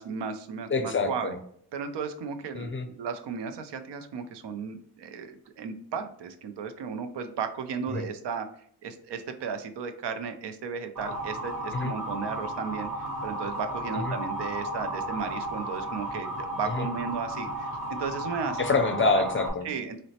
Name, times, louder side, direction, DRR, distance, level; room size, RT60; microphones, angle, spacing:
voice 1, 0.0-1.3 1.7-8.5 8.8-18.6 19.6-20.0, right 6 dB, 90° right, 8 dB, 0.5 m, -35 dB
voice 2, 0.7-1.4 2.5-2.9 7.9-8.1 11.7-11.9 13.9-14.1 16.7-16.9 18.6-19.7, left 3 dB, 30° left, 7 dB, 0.4 m, -26 dB
Motor vehicle (road) / Siren, 11.0-19.5, right 1 dB, 50° right, 1.0 m, -34 dB
3.9 x 2.1 x 2.7 m, 0.65 s
wide cardioid pair, 90°, 40 cm